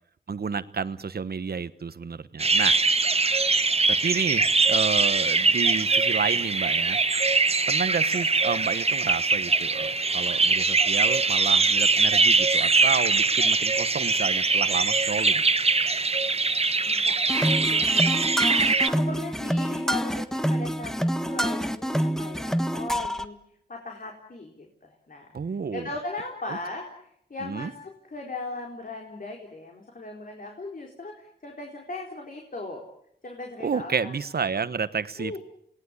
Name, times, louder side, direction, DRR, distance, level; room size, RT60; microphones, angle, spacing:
voice 1, 0.3-2.8 4.0-7.0 7.7-15.4 25.3-25.9 26.5-26.6 27.4-27.7 33.6-35.4, right 5 dB, 65° right, 14 dB, 1.2 m, -30 dB
sound 1, 2.4-18.9, right 3 dB, 35° right, 1.0 m, -22 dB
voice 2, 16.9-18.3 18.6-23.4 23.7-25.3 25.7-32.8 33.2-34.2 35.2-35.4, left 2 dB, 50° left, 1 dB, 4.3 m, -38 dB
sound 2, 17.3-23.3, equal, 5° left, 1.4 m, -27 dB
28.0 x 19.0 x 8.4 m, 0.71 s
cardioid pair, 60°, 18 cm